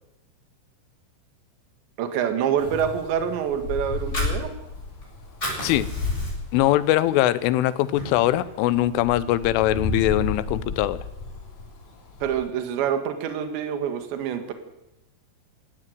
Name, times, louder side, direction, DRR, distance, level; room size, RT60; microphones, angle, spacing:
voice 1, 2.0-4.5 12.2-14.5, right 8 dB, 65° right, 8 dB, 4.0 m, -26 dB
Wind, 2.6-12.5, left 3 dB, 40° left, 4.8 m, -33 dB
Fire, 4.0-5.0 5.3-6.6 7.0-7.2 7.6-8.6, equal, 15° left, 8.0 m, -33 dB
voice 2, 6.5-11.0, left 14 dB, 85° left, 16 dB, 3.4 m, -22 dB
18.0 x 15.5 x 9.4 m, 0.91 s
omnidirectional pair, 5.7 m